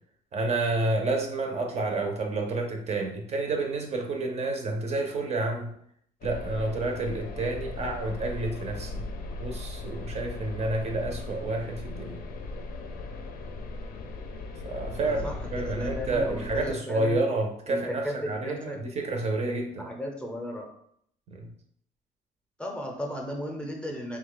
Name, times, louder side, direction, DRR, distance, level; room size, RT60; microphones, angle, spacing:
voice 1, 0.3-5.7 6.2-9.1 9.4-12.2 14.6-19.9 21.3-21.5, right 2 dB, 40° right, 2 dB, 0.6 m, -29 dB
sound 1, 6.2-16.7, left 3 dB, 60° left, 0.5 m, -38 dB
voice 2, 15.0-17.2 17.7-18.8 19.7-20.7 22.6-24.2, equal, 5° left, 0 dB, 0.6 m, -35 dB
2.8 x 2.2 x 3.8 m, 0.68 s
cardioid pair, 110°, 17 cm